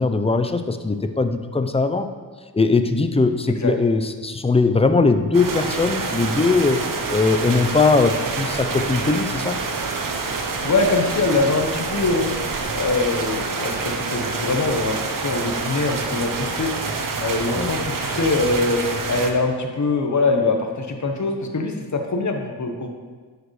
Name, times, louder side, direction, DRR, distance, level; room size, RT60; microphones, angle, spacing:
voice 1, 0.0-2.1 2.5-6.8 7.1-9.6 17.6-17.7, left 3 dB, 15° left, 9 dB, 0.6 m, -20 dB
sound 1, 5.3-19.3, right 4 dB, 50° right, 1.0 m, -27 dB
voice 2, 10.6-12.3 12.7-16.7 17.2-18.8 19.1-22.9, left 3 dB, 40° left, 4 dB, 1.1 m, -23 dB
10.5 x 5.0 x 3.2 m, 1.4 s
cardioid pair, 45°, 42 cm